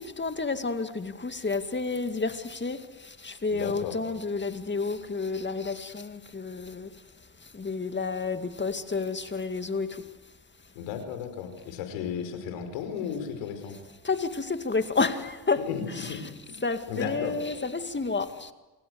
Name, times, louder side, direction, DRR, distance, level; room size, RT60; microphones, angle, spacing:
voice 1, 0.0-6.9 7.5-10.0 14.0-18.5, left 4 dB, 20° left, 2.2 m, -30 dB
voice 2, 3.5-4.0 10.7-13.8 15.6-16.2 16.5-16.6 16.9-17.4, left 7 dB, 75° left, 5.2 m, -34 dB
27.5 x 24.5 x 8.0 m
hypercardioid pair, 60°, 49 cm